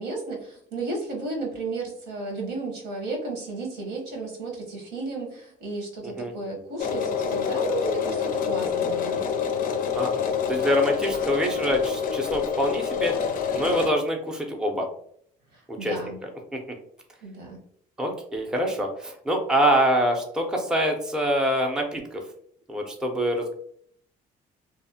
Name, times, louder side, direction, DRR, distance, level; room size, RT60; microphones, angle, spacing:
voice 1, 0.0-9.3 15.5-16.2 17.2-17.6, right 2 dB, 85° right, 0 dB, 1.0 m, -33 dB
sound 1, 6.8-13.9, left 7 dB, 55° left, 0.4 m, -27 dB
voice 2, 9.9-13.1 13.5-14.9 15.7-15.9 18.0-22.2 22.7-23.5, equal, 5° right, 1 dB, 0.5 m, -25 dB
2.7 x 2.0 x 2.7 m, 0.65 s
cardioid pair, 110°, 17 cm